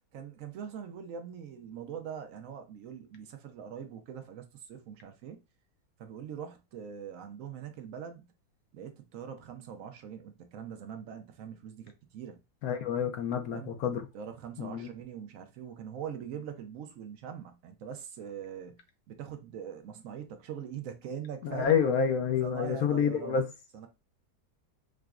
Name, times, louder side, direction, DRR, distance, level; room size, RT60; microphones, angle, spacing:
voice 1, 0.1-5.4 6.0-8.3 8.7-12.4 13.5-13.7 14.1-18.8 19.1-21.7 22.4-23.4 23.7-23.9, right 8 dB, 65° right, 0.9 m, -42 dB
voice 2, 12.6-14.0 14.6-14.9 21.4-23.5, left 7 dB, 70° left, 1.0 m, -28 dB
4.8 x 2.2 x 2.4 m
omnidirectional pair, 1.7 m